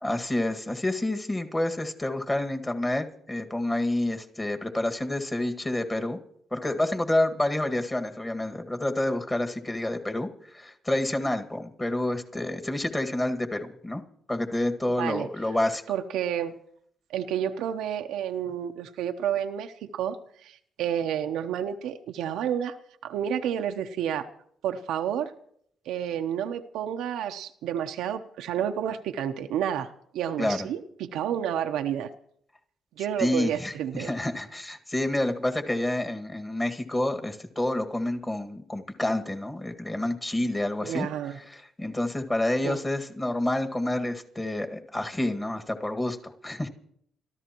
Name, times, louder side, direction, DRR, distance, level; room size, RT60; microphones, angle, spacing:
voice 1, 0.0-6.2 6.5-14.0 14.3-15.8 30.4-30.7 33.2-41.1 41.5-46.7, left 1 dB, 20° left, 6 dB, 1.9 m, -28 dB
voice 2, 14.9-15.3 15.9-16.6 17.1-20.2 20.4-22.8 23.0-24.3 24.6-25.3 25.9-32.1 33.0-34.1 40.8-41.4 42.6-42.8, right 9 dB, 85° right, 6 dB, 0.9 m, -30 dB
29.0 x 13.5 x 3.0 m, 0.67 s
cardioid pair, 90°, 0 cm